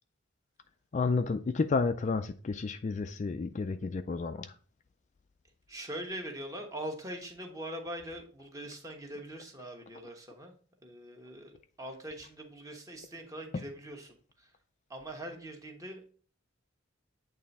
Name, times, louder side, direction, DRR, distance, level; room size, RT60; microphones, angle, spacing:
voice 1, 0.9-4.5, left 4 dB, 35° left, 0.3 m, -31 dB
voice 2, 5.7-10.5 10.8-14.5 14.9-16.1, right 1 dB, 15° right, 1.1 m, -42 dB
8.6 x 3.3 x 4.1 m
head